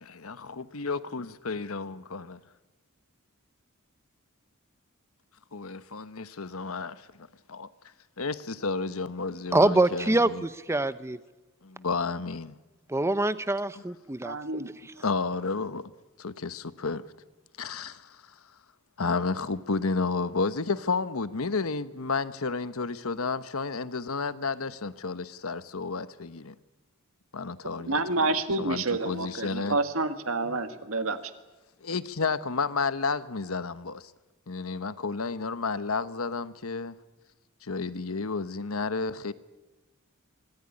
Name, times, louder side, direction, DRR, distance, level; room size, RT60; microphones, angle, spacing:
voice 1, 0.0-2.3 5.5-7.7 8.2-10.5 11.6-12.5 15.0-15.9 16.2-17.0 17.6-18.3 19.0-26.5 27.3-28.3 28.6-29.8 30.4-30.6 31.8-34.1 34.5-36.9 37.6-39.3, left 4 dB, 75° left, 1.1 m, -31 dB
voice 2, 9.5-11.2 12.9-14.9, right 2 dB, 15° right, 0.7 m, -25 dB
voice 3, 14.2-14.7 27.8-31.2, right 3 dB, 70° right, 1.9 m, -28 dB
24.5 x 18.5 x 9.9 m
head